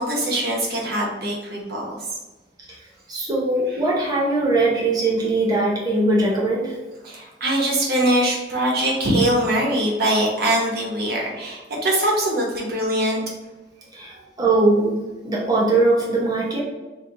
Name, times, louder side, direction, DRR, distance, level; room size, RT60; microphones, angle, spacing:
voice 1, 0.0-1.9 7.0-13.2, right 1 dB, 60° right, -2 dB, 1.0 m, -22 dB
voice 2, 3.1-6.7 13.9-15.0 15.2-16.6, right 2 dB, 25° right, -4 dB, 0.9 m, -20 dB
3.2 x 2.7 x 3.8 m, 1.2 s
head